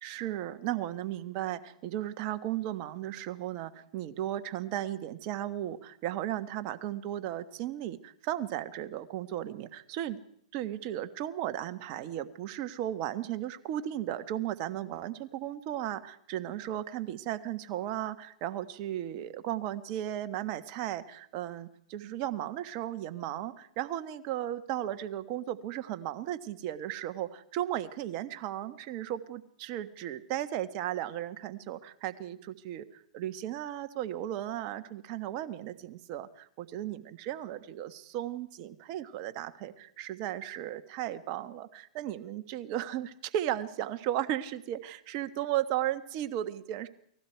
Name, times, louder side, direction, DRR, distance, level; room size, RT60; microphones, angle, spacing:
voice 1, 0.0-10.2 10.5-46.9, right 12 dB, 40° right, 10 dB, 1.4 m, -35 dB
29.0 x 19.5 x 4.6 m, 0.68 s
hypercardioid pair, 130°, 4 cm